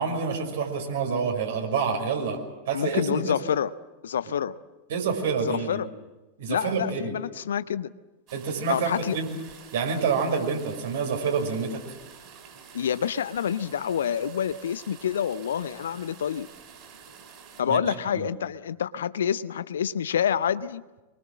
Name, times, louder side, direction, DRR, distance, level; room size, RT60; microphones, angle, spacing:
voice 1, 0.0-2.4 2.7-3.3 4.9-5.8 6.4-7.1 8.3-9.3 9.7-11.8 17.7-18.3, right 5 dB, 60° right, 2 dB, 5.9 m, -27 dB
voice 2, 2.7-3.7 4.0-4.5 5.5-5.9 6.5-7.9 8.7-9.2 12.7-16.5 17.6-20.8, left 8 dB, 65° left, 16 dB, 0.7 m, -27 dB
sound 1, 8.3-17.6, right 7 dB, 40° right, 6.7 m, -49 dB
26.0 x 23.5 x 7.5 m, 1.2 s
figure-of-eight pair, 90°, 0 cm